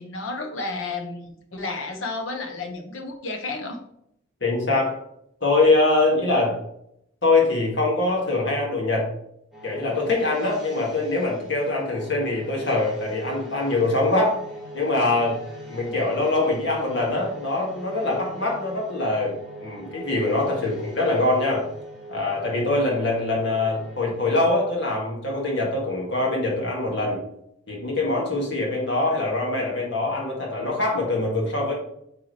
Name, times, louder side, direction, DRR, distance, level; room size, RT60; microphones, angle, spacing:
voice 1, 0.0-3.8, left 3 dB, 75° left, 4 dB, 1.2 m, -32 dB
voice 2, 4.4-5.0 5.4-6.6 7.2-9.1 9.6-14.4 14.7-15.4 15.7-19.3 19.6-21.7 22.1-27.2 27.7-31.7, left 2 dB, 60° left, -2 dB, 2.2 m, -23 dB
sound 1, 9.5-24.5, equal, ahead, 2.3 m, -41 dB
8.5 x 4.6 x 3.3 m, 0.75 s
head